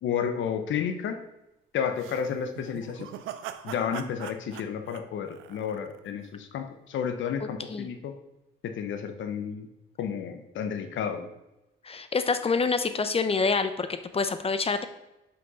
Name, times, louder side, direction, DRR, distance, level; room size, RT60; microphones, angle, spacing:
voice 1, 0.0-1.2 1.7-3.1 3.6-8.1 8.6-9.7 10.0-11.3, left 7 dB, 75° left, 7 dB, 0.9 m, -31 dB
sound 1, 2.0-6.1, right 11 dB, 85° right, 0.6 m, -42 dB
voice 2, 7.4-7.9 11.8-13.9 14.1-14.8, left 4 dB, 30° left, 10 dB, 0.8 m, -27 dB
6.0 x 5.7 x 5.4 m, 0.93 s
cardioid pair, 90°, 20 cm